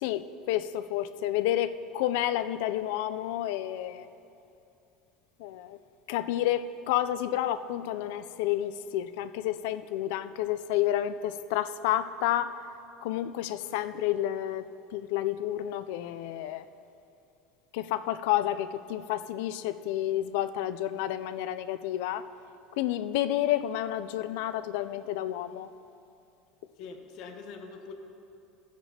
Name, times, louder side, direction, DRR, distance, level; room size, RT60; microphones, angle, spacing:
voice 1, 0.0-4.1 5.4-5.8 6.1-12.5 13.0-14.6 14.9-16.6 17.7-22.2 22.8-25.7, left 12 dB, 70° left, 11 dB, 0.3 m, -30 dB
voice 2, 26.8-27.9, left 5 dB, 50° left, 4 dB, 1.0 m, -43 dB
15.0 x 10.5 x 2.8 m, 2.7 s
cardioid pair, 170°, 0 cm